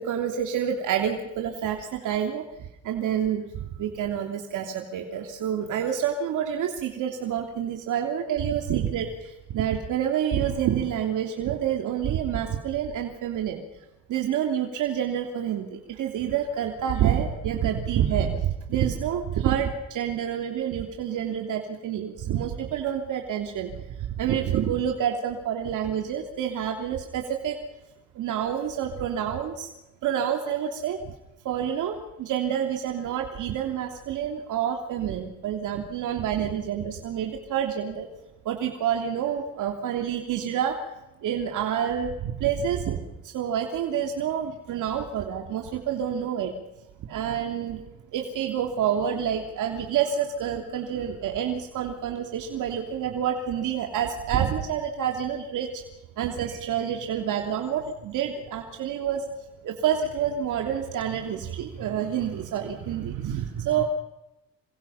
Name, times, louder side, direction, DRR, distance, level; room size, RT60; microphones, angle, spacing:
voice 1, 0.0-2.4 2.8-3.4 3.8-9.1 9.5-13.6 14.1-15.7 16.0-23.7 24.2-27.6 28.1-29.7 30.0-31.0 31.4-38.1 38.4-40.8 41.2-43.0 43.3-46.5 47.0-47.8 48.1-55.7 56.2-59.2 59.6-63.8, right 9 dB, 80° right, 3 dB, 3.1 m, -28 dB
28.0 x 24.5 x 5.8 m, 0.93 s
cardioid pair, 90°, 30 cm